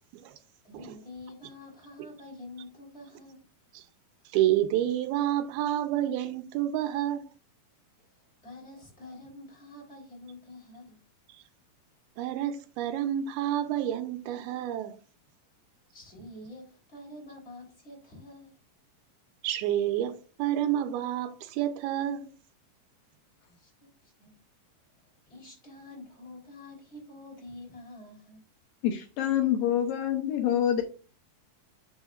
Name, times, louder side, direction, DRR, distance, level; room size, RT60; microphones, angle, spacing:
voice 1, 0.6-3.4 8.0-8.1 8.4-11.0 15.9-18.6 23.6-24.4 25.3-28.4, left 2 dB, 15° left, 3.4 m, -47 dB
voice 2, 4.3-7.2 12.2-15.0 19.4-22.3, right 12 dB, 85° right, 2.7 m, -29 dB
voice 3, 28.8-30.8, left 10 dB, 75° left, 2.2 m, -26 dB
9.2 x 6.3 x 2.5 m
omnidirectional pair, 4.3 m